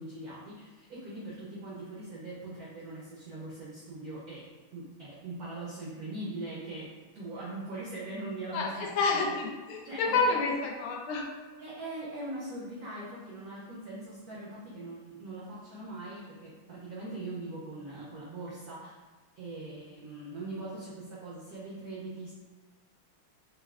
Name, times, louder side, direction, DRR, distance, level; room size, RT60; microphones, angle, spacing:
voice 1, 0.0-8.9 9.8-10.3 11.6-19.0 19.4-22.3, right 2 dB, 80° right, -6 dB, 0.8 m, -41 dB
voice 2, 8.5-11.3, left 4 dB, 80° left, 0 dB, 1.5 m, -29 dB
5.4 x 2.1 x 2.3 m, 1.3 s
omnidirectional pair, 2.4 m